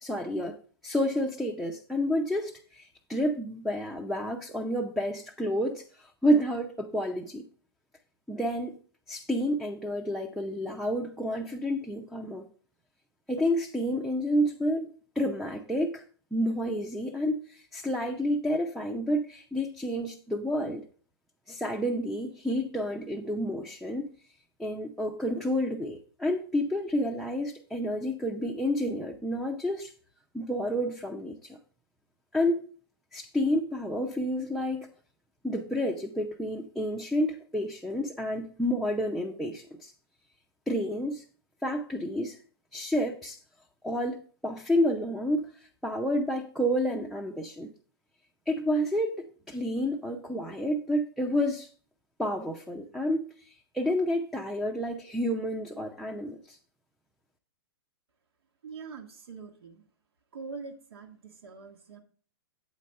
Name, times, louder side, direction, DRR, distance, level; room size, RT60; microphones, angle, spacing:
voice 1, 0.0-7.5 8.3-8.8 9.1-12.5 13.3-16.0 16.3-20.9 21.5-24.1 24.6-29.9 30.3-31.6 32.3-32.7 33.1-34.9 35.4-39.9 40.7-41.2 41.6-42.4 42.7-43.4 43.8-47.7 48.5-51.7 52.2-56.6, equal, ahead, 0.5 m, -30 dB
voice 2, 58.6-59.8 60.3-62.0, right 4 dB, 75° right, 1.3 m, -43 dB
8.4 x 4.1 x 6.4 m
hypercardioid pair, 135°, 13 cm